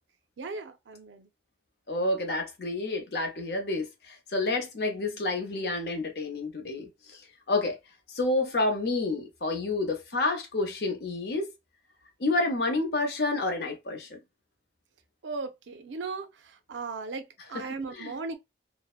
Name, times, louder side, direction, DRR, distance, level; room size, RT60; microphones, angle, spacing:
voice 1, 0.4-1.3 15.2-18.4, right 4 dB, 90° right, 0.5 m, -37 dB
voice 2, 1.9-7.2 7.5-7.8 8.1-11.5 12.2-14.2 17.9-18.1, left 2 dB, 60° left, 0.7 m, -29 dB
2.6 x 2.1 x 2.3 m
head